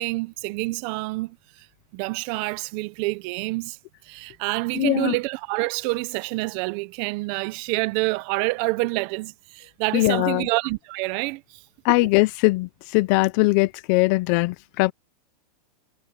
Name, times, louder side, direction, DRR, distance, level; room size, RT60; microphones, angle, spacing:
voice 1, 0.0-1.7 1.9-3.8 4.0-11.6, right 23 dB, 25° right, 0.5 m, -27 dB
voice 2, 4.7-5.2 9.9-10.5 11.8-14.9, left 23 dB, 25° left, 0.4 m, -21 dB
supercardioid pair, 170°, 21 cm